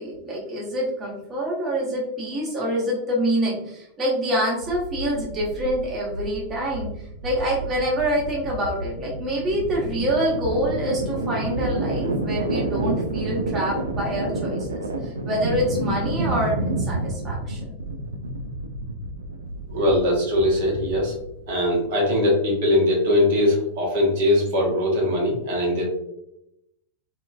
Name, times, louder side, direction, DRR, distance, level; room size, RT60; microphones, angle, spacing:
voice 1, 0.0-6.9 7.2-17.8, equal, 25° right, -4 dB, 1.1 m, -26 dB
sound 1, 4.6-21.6, right 2 dB, 75° right, 0.3 m, -29 dB
voice 2, 19.7-21.1 21.5-25.8, left 1 dB, 50° right, -2 dB, 1.0 m, -21 dB
2.8 x 2.4 x 2.3 m, 0.82 s
figure-of-eight pair, 90°, 0 cm